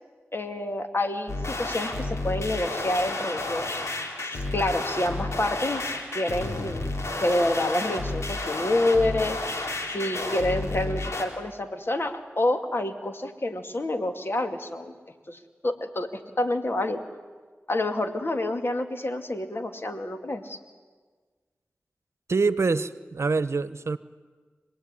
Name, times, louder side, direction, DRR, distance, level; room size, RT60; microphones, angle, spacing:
voice 1, 0.3-3.8 4.2-6.9 7.2-9.4 9.9-14.9 15.3-17.0 17.7-20.6, left 1 dB, 50° left, 6 dB, 2.6 m, -28 dB
sound 1, 1.3-11.2, left 2 dB, 70° left, 3.8 m, -31 dB
voice 2, 22.3-24.0, right 4 dB, 65° right, 15 dB, 0.9 m, -25 dB
26.5 x 19.0 x 9.9 m, 1.4 s
cardioid pair, 40°, 5 cm